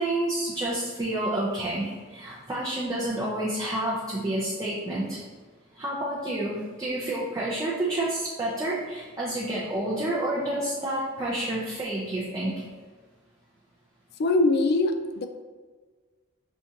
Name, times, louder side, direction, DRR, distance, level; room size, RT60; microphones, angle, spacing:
voice 1, 0.0-5.2 5.8-12.5, right 1 dB, 15° right, -7 dB, 0.5 m, -29 dB
voice 2, 14.2-15.3, left 2 dB, 50° left, 7 dB, 0.3 m, -22 dB
5.7 x 2.5 x 2.7 m, 1.4 s
head